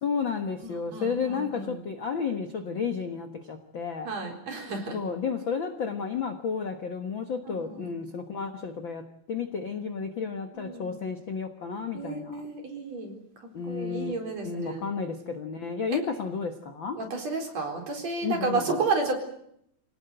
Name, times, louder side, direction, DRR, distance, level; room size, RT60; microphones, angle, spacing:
voice 1, 0.0-4.1 4.9-12.4 13.5-14.1 14.4-17.0 18.2-18.8, left 5 dB, 60° left, 6 dB, 1.2 m, -32 dB
voice 2, 0.6-1.8 4.1-5.0 7.6-7.9 10.5-11.0 11.9-14.8 15.9-16.0 17.0-19.2, right 3 dB, 45° right, 2 dB, 5.2 m, -32 dB
27.0 x 18.5 x 7.9 m, 0.73 s
omnidirectional pair, 4.3 m